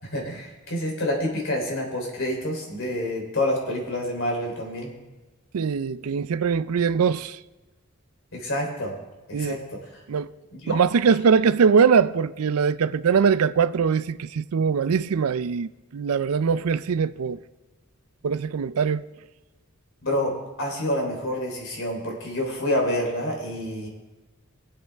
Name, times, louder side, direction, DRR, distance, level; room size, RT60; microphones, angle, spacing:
voice 1, 0.0-4.9 8.3-8.9 9.3-9.6 10.5-11.1 20.0-23.9, left 1 dB, 65° left, 3.4 m, -28 dB
voice 2, 5.5-7.4 9.3-9.6 10.1-10.3 10.7-17.4 18.2-19.1, right 6 dB, 85° right, 0.4 m, -22 dB
23.0 x 7.9 x 3.5 m
head